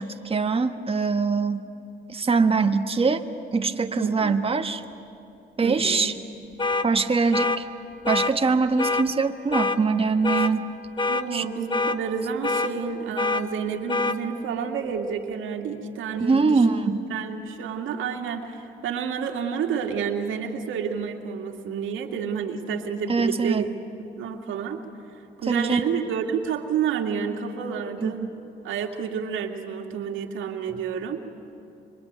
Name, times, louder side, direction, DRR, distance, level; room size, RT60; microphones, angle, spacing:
voice 1, 0.0-1.6 2.1-3.2 3.5-4.8 5.6-6.1 6.8-7.7 8.1-10.6 11.3-11.4 16.2-17.0 23.1-23.7 25.5-25.8 28.0-28.1, right 4 dB, 30° right, 7 dB, 1.5 m, -23 dB
voice 2, 4.0-4.5 5.6-6.1 11.1-23.7 24.2-24.8 25.4-28.2 28.6-31.2, right 6 dB, 80° right, 4 dB, 2.3 m, -30 dB
sound 1, 6.6-6.9 7.3-7.6 8.1-8.3 8.8-9.1 9.5-9.8 10.2-10.5 11.0-11.2 11.7-12.0 12.4-12.7 13.2-13.4 13.9-14.2, left 3 dB, 25° left, 1.4 m, -24 dB
26.5 x 24.0 x 9.5 m, 2.8 s
cardioid pair, 90°, 20 cm